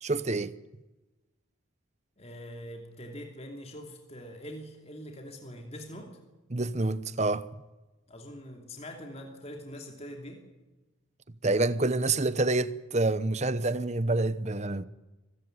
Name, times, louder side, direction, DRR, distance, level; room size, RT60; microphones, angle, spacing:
voice 1, 0.0-0.5 6.5-7.5 11.4-14.8, right 2 dB, 30° right, 0.8 m, -27 dB
voice 2, 2.2-6.2 8.1-10.5, equal, 30° left, 2.8 m, -43 dB
25.0 x 16.0 x 9.7 m
head